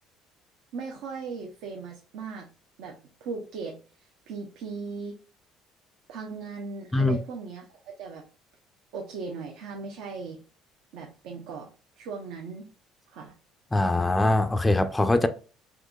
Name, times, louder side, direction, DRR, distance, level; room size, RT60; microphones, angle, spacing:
voice 1, 0.7-2.5 2.8-5.2 6.1-8.2 8.9-10.4 10.9-11.7 12.0-12.7 13.1-13.3, right 4 dB, 80° right, 0.6 m, -38 dB
voice 2, 13.7-15.3, left 2 dB, 10° left, 0.3 m, -22 dB
3.7 x 2.9 x 2.3 m
cardioid pair, 105°, 0 cm